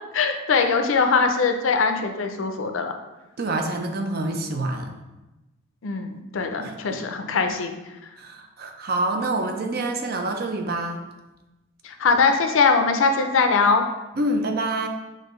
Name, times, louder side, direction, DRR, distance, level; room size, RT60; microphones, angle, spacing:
voice 1, 0.1-2.9 5.8-7.8 11.8-13.8, left 4 dB, 80° left, 6 dB, 0.5 m, -21 dB
voice 2, 3.4-4.9 6.6-7.0 8.2-11.0 14.2-14.9, right 2 dB, 50° right, 4 dB, 0.5 m, -27 dB
6.4 x 2.6 x 3.1 m, 1.0 s
head